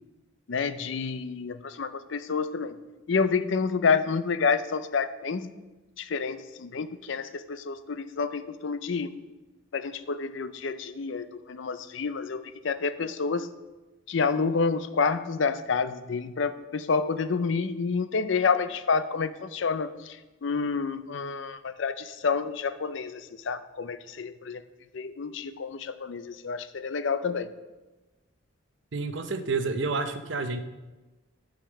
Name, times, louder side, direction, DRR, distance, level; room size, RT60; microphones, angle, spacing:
voice 1, 0.5-2.7 3.1-5.5 6.0-9.2 9.7-13.5 14.1-24.6 24.9-27.5, left 5 dB, 65° left, 12 dB, 0.5 m, -29 dB
voice 2, 28.9-30.6, right 3 dB, 60° right, 9 dB, 0.7 m, -29 dB
9.0 x 5.0 x 6.2 m, 1.2 s
head